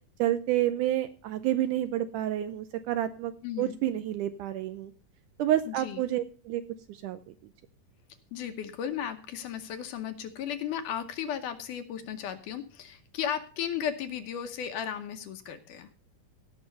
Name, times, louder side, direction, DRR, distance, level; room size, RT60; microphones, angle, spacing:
voice 1, 0.2-3.3 3.6-4.9 5.4-6.6 6.9-7.2, right 12 dB, 80° right, 11 dB, 1.9 m, -29 dB
voice 2, 3.4-3.8 5.7-6.0 8.3-15.9, left 9 dB, 70° left, 8 dB, 2.3 m, -35 dB
16.5 x 6.0 x 5.3 m, 0.39 s
omnidirectional pair, 4.1 m